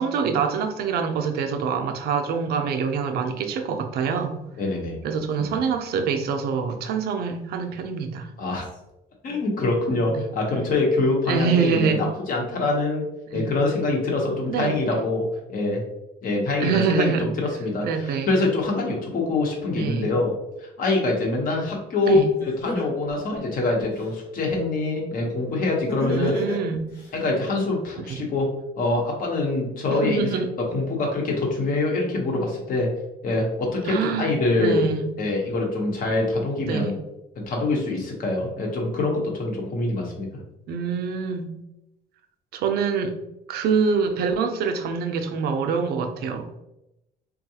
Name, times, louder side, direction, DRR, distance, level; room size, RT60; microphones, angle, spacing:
voice 1, 0.0-4.4 5.0-8.3 10.1-10.3 11.3-12.0 13.3-13.5 14.5-14.8 16.6-17.3 17.8-18.4 19.8-20.1 22.0-22.4 26.0-26.9 28.1-28.3 29.9-30.5 33.9-35.1 36.6-37.0 40.7-41.5 42.5-43.2 43.5-46.6, right 6 dB, 70° right, 6 dB, 0.5 m, -25 dB
voice 2, 4.6-5.0 5.4-5.5 8.4-8.7 9.2-13.1 13.3-15.3 15.5-15.8 16.2-20.3 20.6-26.3 27.1-28.5 28.8-30.3 30.6-32.9 33.2-34.9 35.2-36.9 37.4-40.3, left 2 dB, 55° left, 0 dB, 1.0 m, -24 dB
Laughter, 22.1-22.2 22.7-24.1 25.9-27.1, left 2 dB, 85° left, 1.4 m, -30 dB
3.5 x 2.3 x 2.8 m, 0.90 s
cardioid pair, 110°, 17 cm